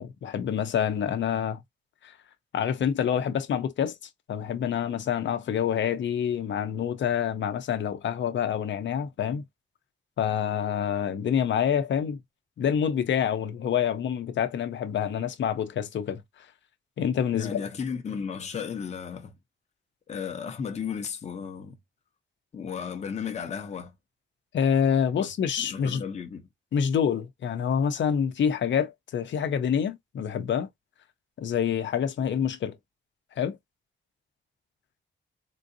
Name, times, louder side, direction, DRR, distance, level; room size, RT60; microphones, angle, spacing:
voice 1, 0.0-1.6 2.0-2.2 2.5-4.0 4.3-9.4 10.2-12.2 12.6-16.2 17.0-17.6 24.5-26.0 26.7-30.7 31.4-32.8 33.4-33.6, left 8 dB, 65° left, 0.7 m, -27 dB
voice 2, 17.3-19.3 20.1-21.8 22.5-23.9 25.2-25.3 25.6-26.4, left 6 dB, 35° left, 0.7 m, -34 dB
3.8 x 2.7 x 2.6 m
wide cardioid pair, 155°, 20 cm